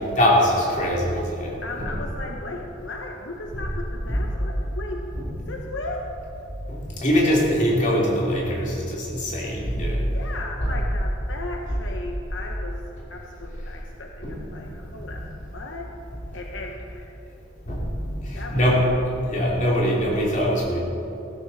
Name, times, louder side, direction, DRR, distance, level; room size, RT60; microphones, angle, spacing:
voice 1, 0.1-1.9 3.5-3.6 4.1-4.2 5.1-5.5 6.7-10.0 10.6-10.7 13.0-13.1 14.2-14.4 14.7-15.2 17.7-18.9 19.2-20.8, equal, 40° left, -4 dB, 3.0 m, -23 dB
voice 2, 1.6-5.1 5.5-6.1 10.1-12.8 13.1-15.9 16.3-17.2 18.3-18.9, left 2 dB, 75° left, 1 dB, 0.9 m, -36 dB
15.5 x 13.5 x 4.2 m, 3.0 s
head